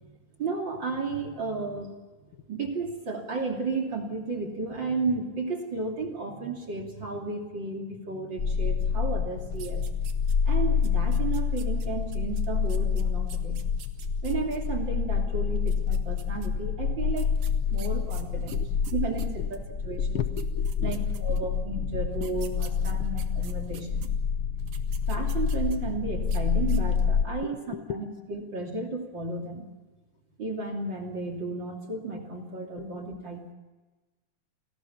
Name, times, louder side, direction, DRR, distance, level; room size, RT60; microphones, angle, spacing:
voice 1, 0.4-1.9 2.5-9.8 10.4-13.6 14.2-17.4 17.7-18.6 18.9-20.2 20.8-24.1 25.1-27.6 27.9-29.6 30.4-33.4, right 3 dB, 35° right, 6 dB, 3.3 m, -33 dB
sound 1, 8.4-27.2, left 6 dB, 55° left, 1.2 m, -28 dB
sound 2, 9.5-10.5 10.8-14.6 15.6-16.5 17.2-19.6 20.1-20.2 20.4-21.6 22.1-24.1 24.6-25.9 26.2-26.4 26.7-27.1, right 9 dB, 90° right, 3.5 m, -49 dB
voice 2, 18.5-18.9 19.4-19.6 19.9-21.0 21.4-21.6 22.2-22.3 22.8-23.1 27.4-28.1 32.8-32.9, left 9 dB, 80° left, 10 dB, 1.2 m, -37 dB
30.0 x 21.5 x 5.8 m, 1.2 s
omnidirectional pair, 3.8 m